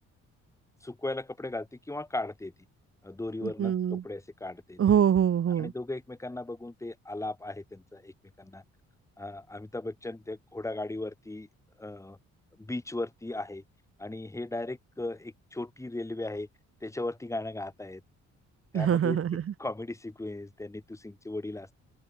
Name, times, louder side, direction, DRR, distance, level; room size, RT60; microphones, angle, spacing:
voice 1, 0.8-2.5 3.0-4.8 5.6-8.6 9.2-11.5 11.8-12.2 12.6-13.6 14.0-16.5 16.8-18.0 18.7-19.2 19.6-21.8, left 2 dB, 10° left, 1.4 m, -37 dB
voice 2, 3.4-4.0 4.8-5.7 18.7-19.5, right 9 dB, 50° right, 1.1 m, -24 dB
open air
cardioid pair, 90°, 30 cm